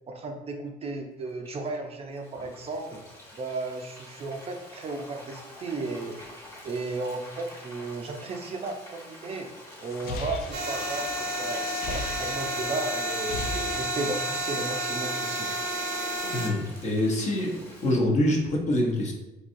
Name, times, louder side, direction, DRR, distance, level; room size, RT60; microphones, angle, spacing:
voice 1, 0.1-3.0 3.3-6.2 6.6-9.5 9.8-15.5, right 3 dB, 35° right, 3 dB, 0.4 m, -34 dB
Frying (food), 1.2-17.9, left 1 dB, 15° left, 1.0 m, -48 dB
sound 1, 9.8-12.7 13.0-14.4, left 3 dB, 65° left, 0.4 m, -37 dB
sound 2, 10.5-16.5, right 1 dB, 85° right, 0.7 m, -31 dB
voice 2, 16.3-19.1, left 1 dB, 45° left, 0 dB, 0.8 m, -25 dB
3.8 x 2.7 x 2.5 m, 0.98 s
cardioid pair, 110°, 17 cm